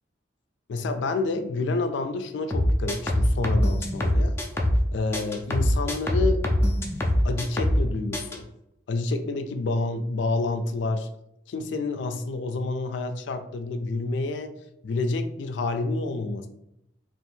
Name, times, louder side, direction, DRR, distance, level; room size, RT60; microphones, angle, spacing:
voice 1, 0.7-4.4 4.9-6.4 6.8-8.5 8.9-11.1 11.5-14.5 14.8-16.5, left 3 dB, 75° left, 7 dB, 0.3 m, -28 dB
sound 1, 2.5-4.9 5.1-7.9 8.1-8.4, equal, 15° left, 0.4 m, -23 dB
2.7 x 2.4 x 4.1 m, 0.80 s
head